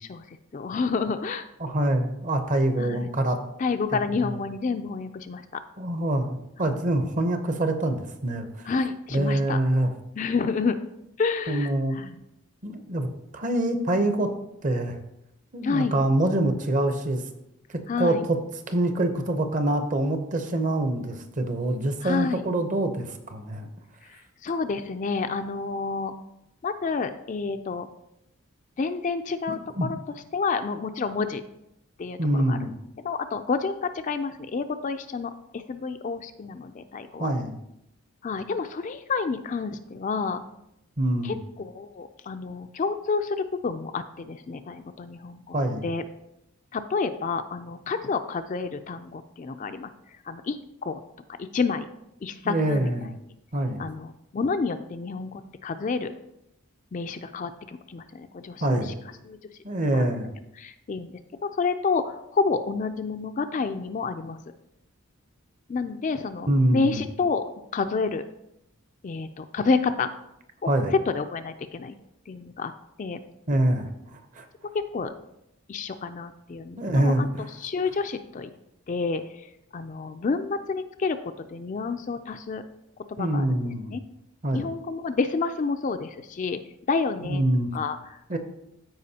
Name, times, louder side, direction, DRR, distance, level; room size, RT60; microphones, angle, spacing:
voice 1, 0.0-1.5 2.8-3.1 3.6-5.6 8.7-9.6 10.2-10.8 11.2-12.2 15.6-16.0 17.9-18.2 22.0-22.5 24.1-26.1 26.6-27.9 28.8-30.0 30.3-31.4 32.0-32.7 33.0-37.3 38.2-40.4 41.2-45.6 45.8-46.0 46.7-49.9 50.3-51.0 51.5-51.9 52.2-52.9 53.8-56.1 56.9-58.9 59.2-59.4 59.9-60.1 60.6-61.1 61.6-64.4 65.7-68.2 69.0-70.1 70.6-72.0 72.3-72.7 73.0-73.2 74.9-75.1 75.7-77.3 77.6-78.5 78.9-79.5 79.7-82.6 83.1-83.5 83.9-84.0 84.5-86.6 86.9-87.4 87.7-88.4, left 4 dB, 35° left, 8 dB, 0.3 m, -29 dB
voice 2, 1.6-3.4 5.8-8.5 9.1-9.9 11.5-12.0 12.6-13.1 13.3-14.3 14.6-15.0 15.5-17.2 18.0-18.4 18.7-23.7 29.8-29.9 32.2-32.7 37.2-37.6 41.0-41.4 45.5-45.8 52.4-53.1 53.5-53.8 58.6-58.9 59.6-60.3 66.5-67.0 70.7-70.9 73.5-74.5 76.8-77.5 83.2-84.0 84.4-84.7 87.3-87.7 88.3-88.4, right 1 dB, 35° right, 7 dB, 0.7 m, -25 dB
13.5 x 4.8 x 2.8 m, 0.83 s
head